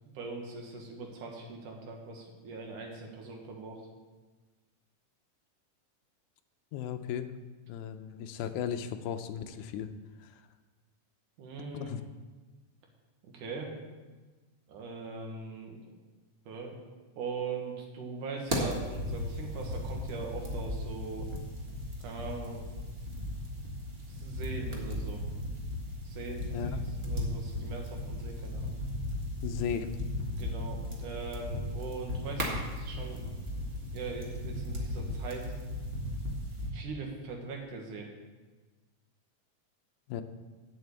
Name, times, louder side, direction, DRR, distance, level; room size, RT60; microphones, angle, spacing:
voice 1, 0.1-3.8 11.4-11.9 13.2-13.8 14.7-15.8 16.5-16.8 17.2-21.3 22.0-22.7 24.1-25.2 26.0-28.7 30.3-33.2 33.9-35.5 36.7-38.1, right 4 dB, 75° right, 1 dB, 3.0 m, -41 dB
voice 2, 6.7-7.3 7.7-9.9 10.2-10.4 11.7-12.0 26.5-26.8 29.4-30.0 40.1-40.2, left 8 dB, 80° left, 8 dB, 1.9 m, -36 dB
sound 1, 18.5-36.7, left 1 dB, 35° right, 0.9 m, -36 dB
7.8 x 7.5 x 8.2 m, 1.3 s
omnidirectional pair, 3.8 m